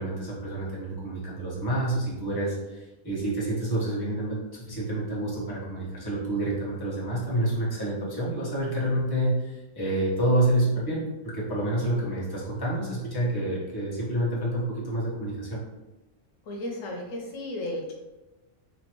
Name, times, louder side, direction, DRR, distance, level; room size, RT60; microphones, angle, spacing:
voice 1, 0.0-4.4 4.7-15.6, right 1 dB, 20° left, -7 dB, 1.1 m, -28 dB
voice 2, 16.4-17.9, left 1 dB, 85° left, 0 dB, 1.1 m, -34 dB
4.2 x 2.9 x 3.0 m, 1.1 s
omnidirectional pair, 1.3 m